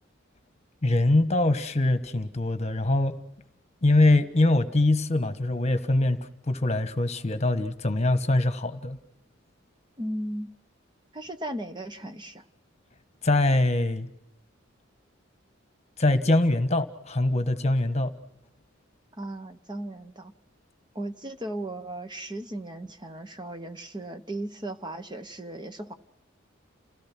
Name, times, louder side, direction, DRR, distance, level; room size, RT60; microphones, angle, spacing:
voice 1, 0.8-3.1 3.8-6.2 6.5-9.0 13.2-14.1 16.0-18.1, left 2 dB, 35° left, 10 dB, 1.4 m, -23 dB
voice 2, 10.0-10.5 11.1-12.4 19.2-20.3 20.9-25.9, right 1 dB, 20° right, 8 dB, 1.1 m, -36 dB
29.5 x 17.5 x 6.1 m, 0.81 s
head